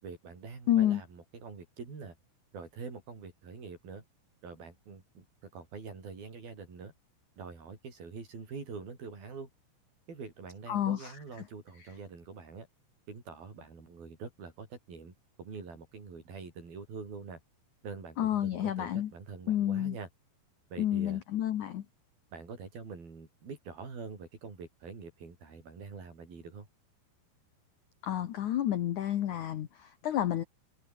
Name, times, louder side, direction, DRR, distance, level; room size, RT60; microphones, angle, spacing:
voice 1, 0.0-2.2 2.5-4.0 4.4-5.3 5.5-6.9 7.4-9.5 10.1-12.7 13.1-17.4 17.8-20.1 20.7-21.2 22.3-26.7, right 5 dB, 50° right, 7.7 m, -45 dB
voice 2, 0.7-1.0 10.7-11.1 18.2-19.1 19.5-20.0 20.8-21.8 28.0-30.4, left 11 dB, 80° left, 1.7 m, -30 dB
omnidirectional pair, 5.5 m